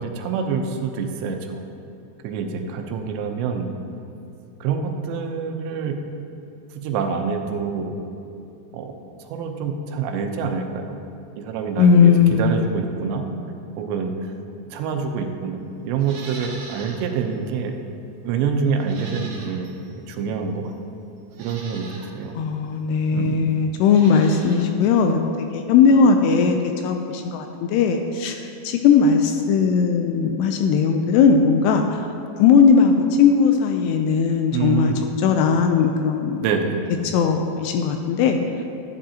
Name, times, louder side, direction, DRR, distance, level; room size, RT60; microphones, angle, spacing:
voice 1, 0.0-1.6 2.2-3.7 4.6-6.0 6.8-7.9 8.7-8.9 9.2-10.9 11.4-13.2 13.8-14.3 14.7-17.7 18.2-19.7 20.1-20.7 21.4-22.3 23.1-23.4 34.5-35.0 36.4-36.8, right 6 dB, 85° right, 4 dB, 3.0 m, -26 dB
voice 2, 11.8-12.6 22.4-26.6 26.8-32.0 32.4-34.9 35.2-36.4 37.1-38.4, left 6 dB, 85° left, 5 dB, 2.6 m, -18 dB
Livestock farm animals working animals, 16.0-17.1 17.5-17.6 18.8-19.8 20.7-20.8 21.3-22.1 23.8-24.7 25.0-25.1, right 3 dB, 65° right, 2.6 m, -41 dB
13.5 x 10.5 x 2.8 m, 2.8 s
omnidirectional pair, 4.9 m